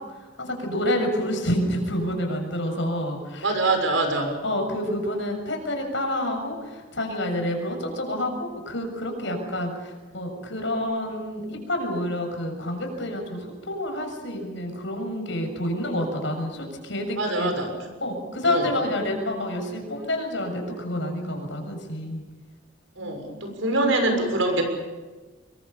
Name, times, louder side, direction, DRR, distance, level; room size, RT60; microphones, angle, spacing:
voice 1, 0.1-3.5 4.4-17.5 18.0-22.2 23.0-23.2, left 1 dB, 65° left, 3 dB, 7.0 m, -28 dB
voice 2, 3.4-4.4 17.2-17.7 18.4-18.7 23.0-24.6, right 2 dB, 85° right, 4 dB, 6.5 m, -24 dB
26.5 x 22.5 x 7.1 m, 1.3 s
head